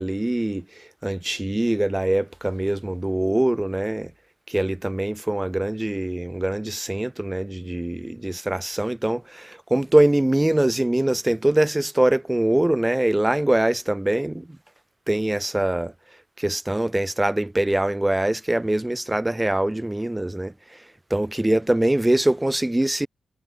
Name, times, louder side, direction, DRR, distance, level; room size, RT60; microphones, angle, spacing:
voice 1, 0.0-4.1 4.5-14.5 15.1-15.9 16.4-20.5 21.1-23.1, right 1 dB, 10° right, 1.4 m, -23 dB
wide cardioid pair, 130°, 0 cm